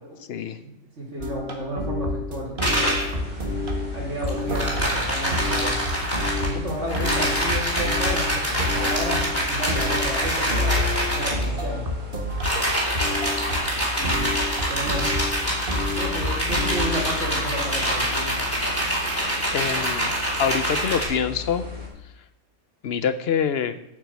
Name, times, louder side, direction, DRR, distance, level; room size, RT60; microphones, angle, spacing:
voice 1, 0.6-2.9 3.9-5.8 6.4-11.9 13.1-13.2 14.0-14.4 14.7-15.1 15.9-18.3, right 1 dB, 75° right, -3 dB, 3.6 m, -32 dB
sound 1, 1.2-17.3, left 1 dB, 45° right, 1.6 m, -29 dB
sound 2, 2.6-3.1 4.3-6.5 6.9-11.4 12.3-21.0, equal, 10° left, 3.2 m, -25 dB
sound 3, 2.8-21.9, left 4 dB, 10° right, 3.2 m, -36 dB
voice 2, 19.5-20.1 20.4-21.6 22.8-23.8, left 7 dB, 60° left, 12 dB, 0.8 m, -25 dB
8.4 x 6.2 x 7.4 m, 0.88 s
omnidirectional pair, 1.3 m